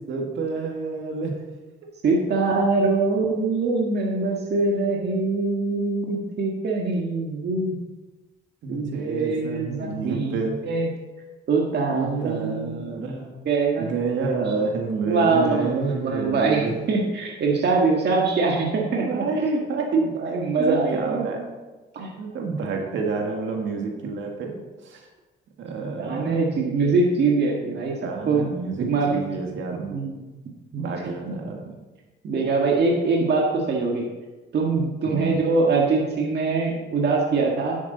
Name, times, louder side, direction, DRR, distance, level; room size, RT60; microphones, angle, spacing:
voice 1, 0.1-1.3 8.6-10.6 11.9-13.3 13.8-16.7 19.0-21.5 22.2-25.0 25.6-26.5 28.0-30.0 30.8-31.7 35.1-35.4, right 4 dB, 75° right, 1 dB, 2.0 m, -29 dB
voice 2, 2.0-7.8 8.7-10.9 11.5-12.9 13.4-13.9 14.4-14.5 15.0-19.2 20.2-21.2 21.9-22.1 26.0-28.0 28.2-28.5 28.8-29.2 29.9-30.2 30.7-30.9 31.2-31.4 32.2-34.1 34.5-37.8, right 3 dB, 55° right, -1 dB, 1.7 m, -23 dB
10.5 x 8.4 x 4.1 m, 1.2 s
cardioid pair, 90°, 20 cm